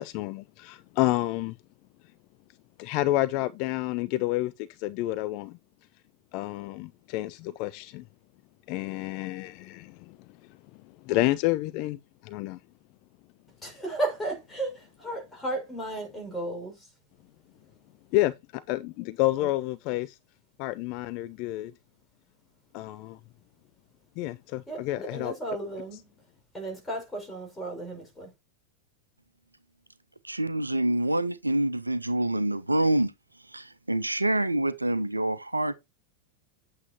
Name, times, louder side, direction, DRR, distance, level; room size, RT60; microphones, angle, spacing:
voice 1, 0.0-1.6 2.8-5.6 6.3-8.0 8.7-10.2 11.0-12.6 18.1-20.2 20.6-21.7 22.7-23.2 24.2-25.3, left 17 dB, 45° left, 0.4 m, -29 dB
voice 2, 13.6-16.9 19.4-19.5 24.7-26.1 26.5-28.3, right 2 dB, 10° left, 5.7 m, -34 dB
voice 3, 30.2-33.1 33.4-35.9, right 1 dB, 85° right, 0.6 m, -26 dB
9.3 x 8.3 x 2.8 m
figure-of-eight pair, 90°, 0 cm